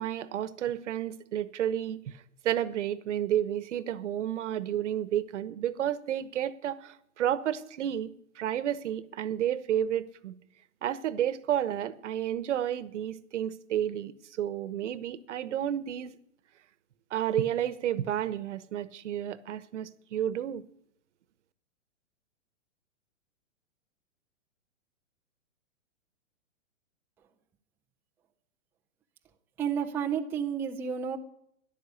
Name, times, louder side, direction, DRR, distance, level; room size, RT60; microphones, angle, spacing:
voice 1, 0.0-2.1 2.4-8.1 8.4-10.4 10.8-16.1 17.1-20.6, right 10 dB, 70° right, 1.1 m, -31 dB
voice 2, 29.6-31.2, right 7 dB, 5° right, 0.5 m, -31 dB
13.0 x 11.0 x 8.3 m
hypercardioid pair, 145°, 37 cm